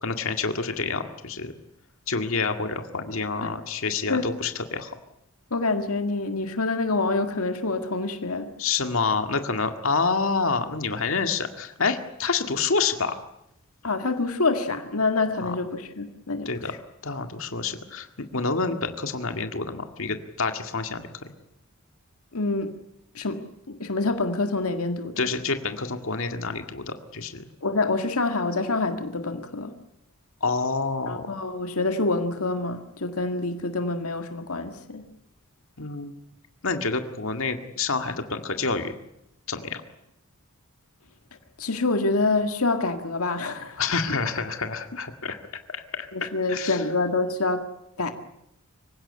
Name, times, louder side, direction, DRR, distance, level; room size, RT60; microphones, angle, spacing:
voice 1, 0.0-1.5 2.1-5.0 8.6-13.2 15.4-15.6 16.5-16.7 17.0-21.0 25.2-27.4 30.4-31.3 35.8-36.1 36.6-38.9 39.5-39.8 43.8-45.4 45.7-46.8, left 4 dB, 70° left, 2.0 m, -28 dB
voice 2, 5.5-8.5 13.8-16.5 22.3-22.8 23.2-25.3 27.6-29.7 31.1-35.0 41.6-43.8 46.1-47.7 48.0-48.1, left 3 dB, 85° left, 1.9 m, -26 dB
25.5 x 16.5 x 9.9 m
head